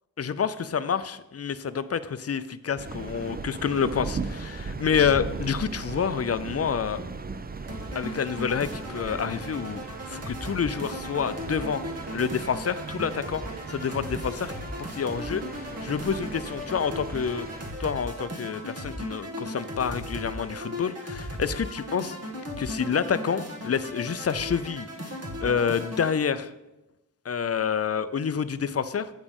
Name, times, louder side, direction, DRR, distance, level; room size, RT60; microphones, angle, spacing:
voice 1, 0.2-7.0 8.0-11.8 12.1-13.4 13.7-17.5 17.8-22.2 22.6-24.9 25.4-26.5 27.3-29.1, left 7 dB, 40° left, 14 dB, 0.4 m, -28 dB
sound 1, 2.8-17.7, right 4 dB, 25° right, 0.4 m, -38 dB
sound 2, 7.7-26.2, equal, 40° right, 1.6 m, -37 dB
8.3 x 5.1 x 5.3 m, 1.0 s
wide cardioid pair, 75°, 37 cm